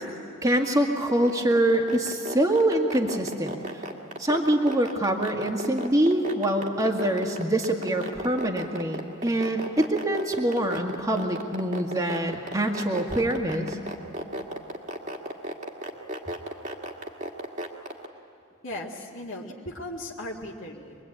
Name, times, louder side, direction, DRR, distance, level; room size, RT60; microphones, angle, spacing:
voice 1, 0.4-3.5 4.2-13.8, right 1 dB, 15° right, 1 dB, 1.8 m, -25 dB
sound 1, 1.1-18.1, right 1 dB, 35° right, 2.0 m, -33 dB
voice 2, 18.6-21.0, left 1 dB, 60° left, -2 dB, 2.0 m, -37 dB
25.5 x 21.5 x 8.8 m, 2.6 s
head